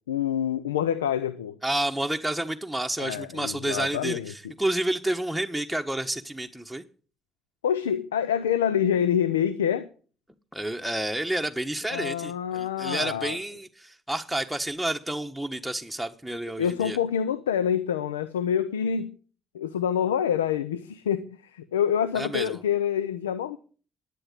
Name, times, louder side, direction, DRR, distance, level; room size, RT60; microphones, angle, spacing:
voice 1, 0.1-1.6 3.0-4.3 7.6-9.9 11.9-13.4 16.6-19.2 19.5-23.6, left 9 dB, 90° left, 0.6 m, -26 dB
voice 2, 1.6-6.8 10.5-17.0 22.1-22.6, right 1 dB, ahead, 1.3 m, -30 dB
11.5 x 9.5 x 8.3 m
hypercardioid pair, 50°, 0 cm